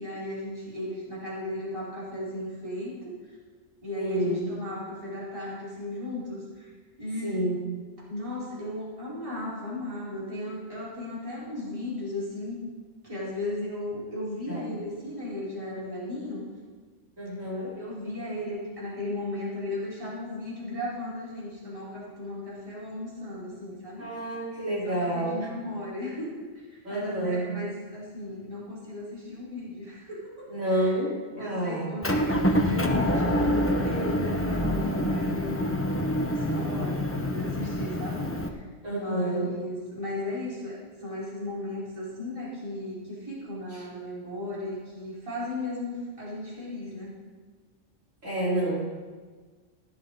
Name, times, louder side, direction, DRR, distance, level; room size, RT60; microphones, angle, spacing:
voice 1, 0.0-3.1 3.8-6.7 7.0-7.4 8.1-12.6 13.0-16.4 17.6-24.1 24.8-26.4 26.9-30.9 31.4-35.9 36.3-38.6 38.9-47.2, left 1 dB, 25° right, -9 dB, 4.5 m, -36 dB
voice 2, 4.0-4.4 7.2-7.6 14.5-14.6 17.2-17.7 24.0-25.5 26.8-27.5 30.5-32.1 38.8-39.5 43.7-43.8 48.2-48.8, right 1 dB, 75° right, -8 dB, 4.7 m, -29 dB
Motor vehicle (road) / Engine, 32.0-38.5, equal, 15° left, 0.7 m, -26 dB
16.0 x 12.5 x 4.0 m, 1.5 s
omnidirectional pair, 1.3 m